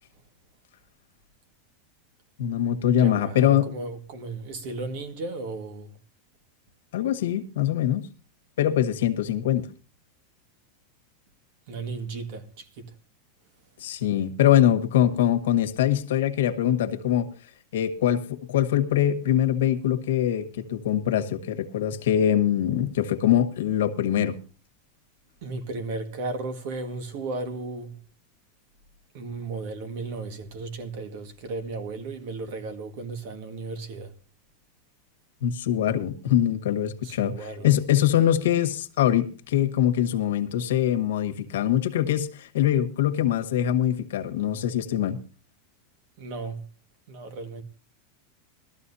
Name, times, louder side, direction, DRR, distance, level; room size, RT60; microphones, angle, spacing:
voice 1, 2.4-3.7 6.9-8.1 8.6-9.7 13.8-17.3 17.7-24.4 35.4-37.3 37.6-45.2, left 11 dB, 85° left, 1.4 m, -23 dB
voice 2, 3.0-6.0 11.7-13.0 25.4-28.0 29.1-34.1 37.0-37.7 46.2-46.7 47.1-47.6, right 3 dB, 50° right, 1.7 m, -35 dB
20.0 x 13.5 x 2.7 m
supercardioid pair, 170°, 0 cm